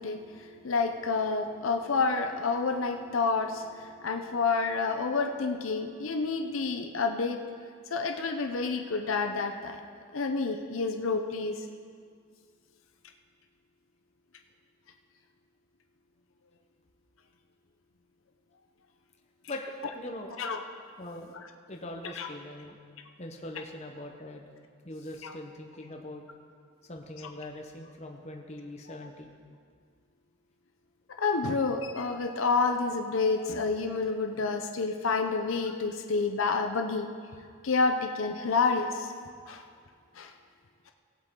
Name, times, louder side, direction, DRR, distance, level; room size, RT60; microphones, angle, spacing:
voice 1, 0.0-7.4 7.9-9.8 10.1-11.6 20.4-20.6 22.2-22.3 25.2-25.3 31.2-37.1 37.6-39.1 39.5-39.6 40.2-40.3, left 4 dB, 80° left, 4 dB, 0.7 m, -29 dB
voice 2, 19.5-20.4 21.0-21.3 21.7-22.8 23.2-24.5 24.8-26.2 26.8-29.3, left 1 dB, 30° left, 2 dB, 0.9 m, -42 dB
18.0 x 8.0 x 3.8 m, 2.1 s
head